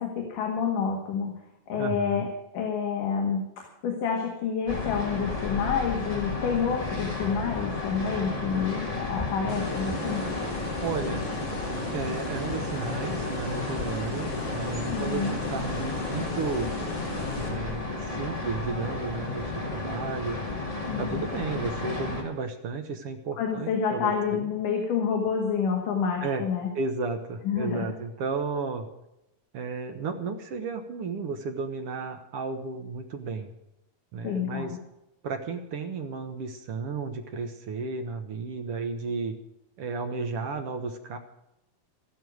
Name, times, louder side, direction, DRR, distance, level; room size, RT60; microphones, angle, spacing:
voice 1, 0.0-1.3 1.7-2.3 2.5-10.3 14.9-15.4 20.9-21.3 23.4-26.7 27.4-27.9 34.2-34.7, left 6 dB, 65° left, 1 dB, 3.4 m, -28 dB
voice 2, 1.8-2.2 10.8-11.3 11.9-15.2 15.5-16.7 17.3-20.4 21.0-24.5 26.2-26.4 26.7-28.9 29.5-33.5 34.1-34.8 35.2-39.3 39.8-41.2, right 4 dB, 65° right, 5 dB, 1.4 m, -33 dB
sound 1, 4.7-22.2, left 3 dB, 10° left, 2.0 m, -33 dB
sound 2, 9.5-17.5, left 1 dB, 40° left, 4.3 m, -36 dB
14.5 x 12.5 x 6.4 m, 0.87 s
omnidirectional pair, 4.2 m